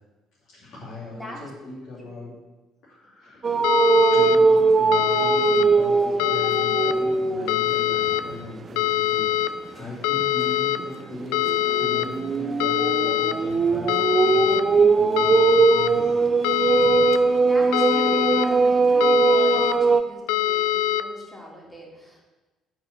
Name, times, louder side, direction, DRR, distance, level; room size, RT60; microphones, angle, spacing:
voice 1, 0.5-2.4 2.8-3.5 3.9-16.1, left 3 dB, 45° left, -9 dB, 3.2 m, -39 dB
voice 2, 1.1-1.4 2.0-2.3 17.4-22.2, equal, 10° left, -3 dB, 3.1 m, -40 dB
sound 1, 3.4-7.6 8.0-8.3 10.8-20.0, right 4 dB, 30° right, 0.6 m, -20 dB
sound 2, 3.6-4.4 4.9-5.6 6.2-6.9 7.5-8.2 8.8-9.5 10.0-10.8 11.3-12.1 12.6-13.3 13.9-14.6 15.2-15.9 16.4-17.2 17.7-18.5 19.0-19.7 20.3-21.0, left 13 dB, 60° left, 0.4 m, -23 dB
9.5 x 4.8 x 6.4 m, 1.2 s
figure-of-eight pair, 50°, 0 cm